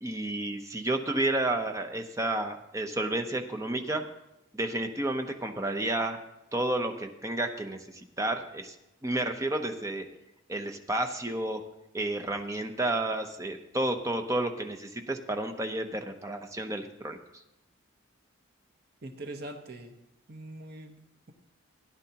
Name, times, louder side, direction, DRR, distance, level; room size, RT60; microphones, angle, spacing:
voice 1, 0.0-4.0 4.5-6.2 6.5-8.7 9.0-10.1 10.5-11.6 11.9-17.2, right 1 dB, 15° right, 5 dB, 0.7 m, -31 dB
voice 2, 19.0-20.0 20.3-21.3, right 1 dB, 50° right, 4 dB, 1.0 m, -43 dB
17.0 x 10.5 x 2.9 m, 0.89 s
head